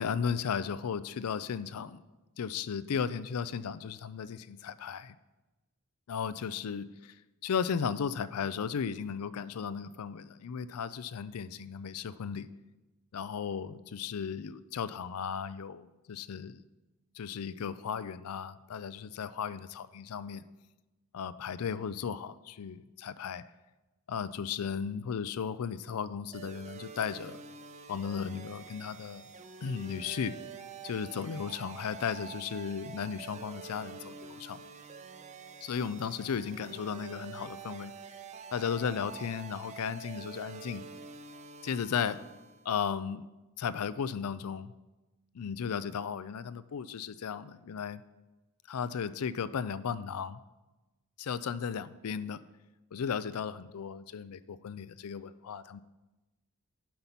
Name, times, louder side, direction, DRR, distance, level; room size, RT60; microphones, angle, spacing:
voice 1, 0.0-2.0 2.4-5.1 6.1-7.2 7.4-12.5 13.1-16.6 17.2-20.4 21.1-23.4 24.1-27.4 27.9-29.2 29.6-30.4 30.8-34.6 35.6-37.9 38.5-40.8 41.6-42.2 42.6-43.2 43.6-44.7 45.3-48.0 48.7-50.4 51.2-52.4 52.9-55.8, left 7 dB, 90° left, 15 dB, 0.4 m, -35 dB
sound 1, 26.3-42.7, right 5 dB, 30° right, 0.5 m, -47 dB
10.0 x 5.3 x 5.7 m, 1.1 s
head